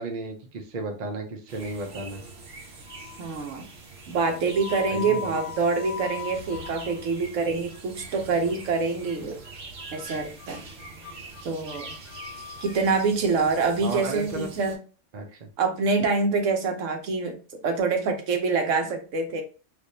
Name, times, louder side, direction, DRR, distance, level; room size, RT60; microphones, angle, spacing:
voice 1, 0.0-2.2 4.9-5.4 13.8-14.5 15.1-15.3, right 2 dB, 45° right, 4 dB, 0.6 m, -33 dB
sound 1, 1.5-14.8, right 3 dB, 60° right, 0.9 m, -44 dB
sound 2, 1.9-2.5 2.8-3.4 4.1-7.4 7.7-8.1 8.5-8.8 9.0-9.1 9.4-9.5 9.8-12.8, left 8 dB, 80° left, 1.1 m, -40 dB
voice 2, 3.2-3.7 4.1-9.4 9.9-10.6 11.4-11.9 12.6-14.8 15.6-17.3 17.6-19.4, right 4 dB, 85° right, 5 dB, 1.1 m, -25 dB
3.3 x 2.5 x 2.7 m, 0.36 s
omnidirectional pair, 1.3 m